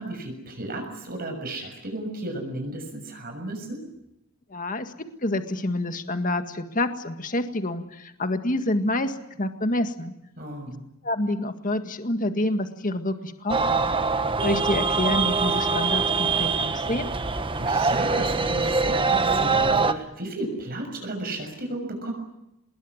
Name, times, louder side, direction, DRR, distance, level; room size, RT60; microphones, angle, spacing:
voice 1, 0.0-3.8 10.4-10.8 17.6-22.1, right 1 dB, 45° right, 3 dB, 6.6 m, -34 dB
voice 2, 4.5-10.1 11.0-13.8 14.4-17.1, left 1 dB, 40° left, 7 dB, 1.9 m, -27 dB
sound 1, 13.5-19.9, right 4 dB, 25° right, 1.2 m, -23 dB
26.0 x 21.5 x 9.7 m, 0.87 s
head